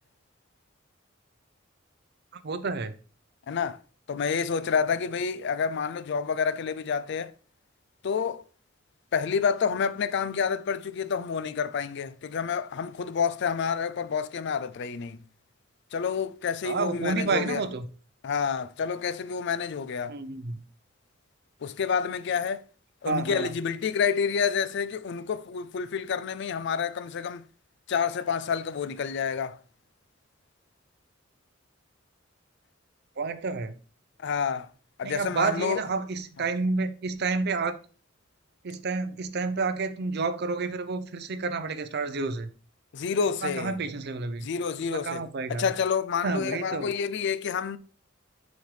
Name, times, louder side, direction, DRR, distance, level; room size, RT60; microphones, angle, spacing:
voice 1, 2.4-2.9 16.6-17.9 20.1-20.6 23.0-23.5 33.2-33.7 35.0-37.8 38.6-42.5 43.4-44.5 44.9-45.7 46.2-46.9, right 4 dB, 55° right, 0.6 m, -30 dB
voice 2, 3.5-3.8 4.1-7.3 8.0-8.4 9.1-15.2 15.9-17.6 18.2-20.2 21.6-22.6 23.0-27.4 27.9-29.6 34.2-34.7 35.0-35.8 42.9-43.8 44.4-45.2 45.5-47.8, left 6 dB, 60° left, 0.4 m, -28 dB
6.4 x 5.1 x 3.2 m
head